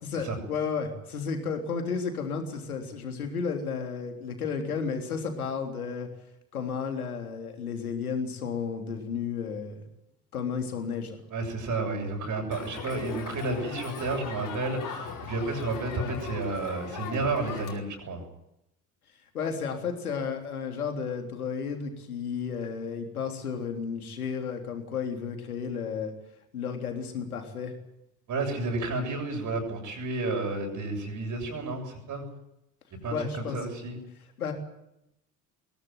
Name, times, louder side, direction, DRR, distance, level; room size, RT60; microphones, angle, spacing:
voice 1, 0.0-6.1 6.5-9.9 10.3-11.2 19.3-26.1 26.5-27.7 33.1-33.6 34.4-34.5, left 6 dB, 75° left, 4 dB, 3.5 m, -32 dB
voice 2, 11.3-18.2 28.3-32.3 33.0-34.0, right 2 dB, 45° right, 2 dB, 7.6 m, -31 dB
Crowd, 12.5-17.8, left 6 dB, 45° left, 5.1 m, -39 dB
22.5 x 17.5 x 9.2 m, 0.83 s
figure-of-eight pair, 60°, 44 cm